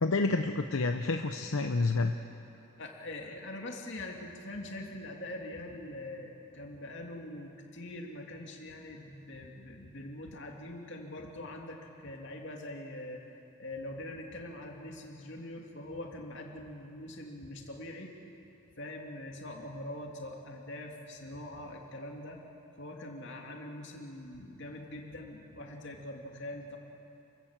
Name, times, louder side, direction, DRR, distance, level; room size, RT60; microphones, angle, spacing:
voice 1, 0.0-2.1, left 3 dB, 80° left, 6 dB, 0.8 m, -29 dB
voice 2, 2.8-13.2 13.6-18.1 18.8-22.4 22.8-26.8, left 1 dB, 60° left, 1 dB, 2.7 m, -43 dB
29.0 x 16.0 x 7.5 m, 2.8 s
head